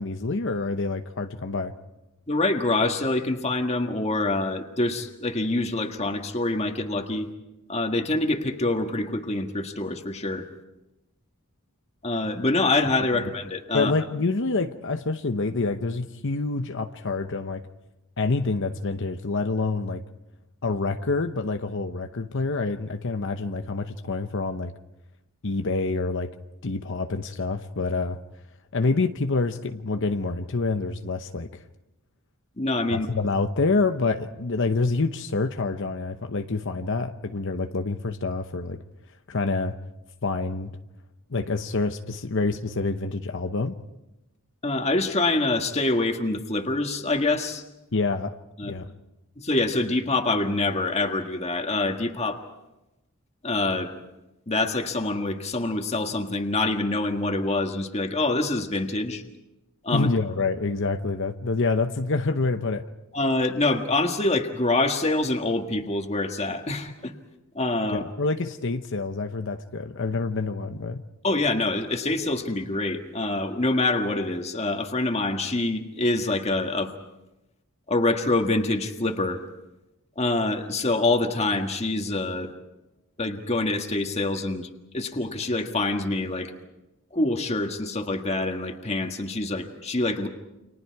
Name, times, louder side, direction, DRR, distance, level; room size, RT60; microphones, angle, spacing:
voice 1, 0.0-1.7 13.7-17.6 18.2-20.0 20.6-24.7 25.4-26.3 26.6-28.2 28.7-31.6 32.9-38.8 39.3-39.8 40.2-40.7 41.3-43.8 47.9-48.3 48.6-48.9 59.9-62.9 67.9-71.0, left 3 dB, 60° left, 0.9 m, -27 dB
voice 2, 2.3-7.3 7.7-10.5 12.0-13.9 32.6-33.1 44.6-47.6 48.6-48.7 49.4-52.4 53.4-53.9 54.5-59.2 59.8-60.1 63.1-67.1 67.5-68.0 71.2-76.9 77.9-79.4 80.2-82.5 83.2-84.7 84.9-86.5 87.1-90.3, left 2 dB, 30° left, 1.8 m, -25 dB
30.0 x 26.0 x 4.8 m
head